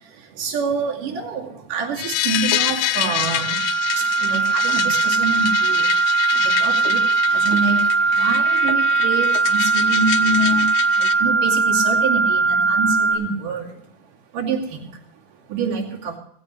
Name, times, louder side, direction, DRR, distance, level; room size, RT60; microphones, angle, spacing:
voice 1, 0.4-3.6 4.0-5.9 6.4-7.0 7.3-7.9 8.1-10.7 11.0-13.7 14.3-14.6 15.5-16.2, right 4 dB, 85° right, -2 dB, 4.2 m, -26 dB
sound 1, 2.0-11.1, left 13 dB, 75° left, 1.7 m, -27 dB
sound 2, 3.2-13.1, right 4 dB, 45° left, 3.1 m, -19 dB
19.0 x 16.0 x 3.1 m, 0.68 s
omnidirectional pair, 3.7 m